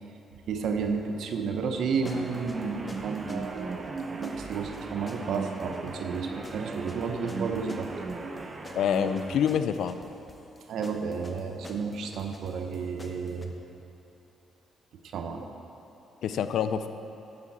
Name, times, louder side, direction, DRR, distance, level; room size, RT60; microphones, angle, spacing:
voice 1, 0.5-8.1 10.7-13.5 15.1-15.5, right 5 dB, 75° right, 5 dB, 0.7 m, -32 dB
sound 1, 2.0-9.4, right 3 dB, 35° right, 0.7 m, -37 dB
sound 2, 2.1-13.5, left 2 dB, 25° left, 0.9 m, -49 dB
voice 2, 8.8-9.9 16.2-16.9, left 8 dB, 75° left, 10 dB, 0.4 m, -26 dB
9.7 x 9.5 x 4.1 m, 3.0 s
cardioid pair, 90°, 0 cm